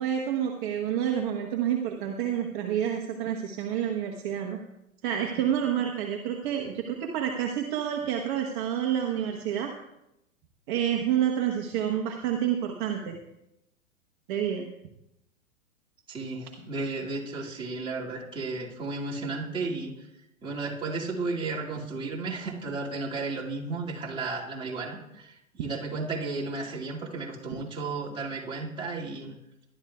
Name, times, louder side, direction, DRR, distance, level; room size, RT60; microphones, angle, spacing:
voice 1, 0.0-4.6 5.0-9.7 10.7-13.2 14.3-14.7, right 9 dB, 35° right, 2 dB, 1.1 m, -28 dB
voice 2, 16.1-19.9 20.4-29.3, right 3 dB, 10° right, -5 dB, 2.3 m, -33 dB
19.5 x 11.5 x 2.4 m, 0.86 s
figure-of-eight pair, 110°, 42 cm